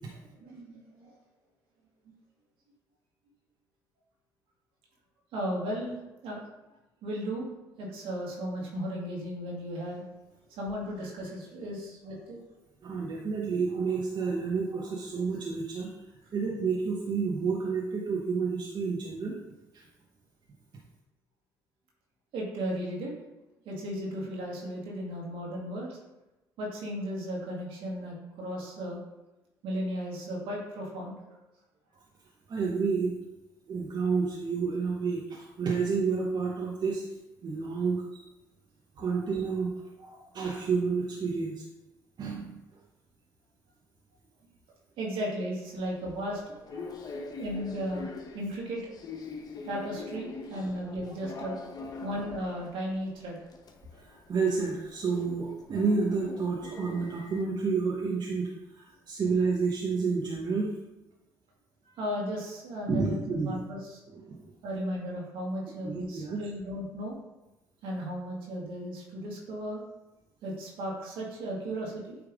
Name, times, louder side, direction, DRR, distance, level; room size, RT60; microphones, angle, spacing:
voice 1, 0.2-1.1 2.1-2.2 5.3-6.5 7.0-7.5 7.8-10.0 10.6-12.4 22.3-23.1 23.7-26.0 26.6-29.0 29.6-31.4 45.0-46.4 47.4-48.9 49.6-51.6 52.0-53.4 61.8-63.2 63.5-64.0 64.6-67.2 67.8-69.8 70.4-72.2, equal, 70° right, -2 dB, 2.1 m, -35 dB
voice 2, 12.8-15.9 16.3-19.4 19.7-19.8 32.5-33.2 33.7-37.0 37.4-38.2 39.0-41.6 42.2-42.6 46.8-47.0 50.5-50.7 53.9-60.7 62.9-63.6 64.1-64.4 65.8-66.4, right 4 dB, 50° right, -3 dB, 1.1 m, -30 dB
sound 1, 45.7-57.4, left 3 dB, 45° left, 1.0 m, -44 dB
8.8 x 3.3 x 3.6 m, 1.0 s
supercardioid pair, 65°, 9 cm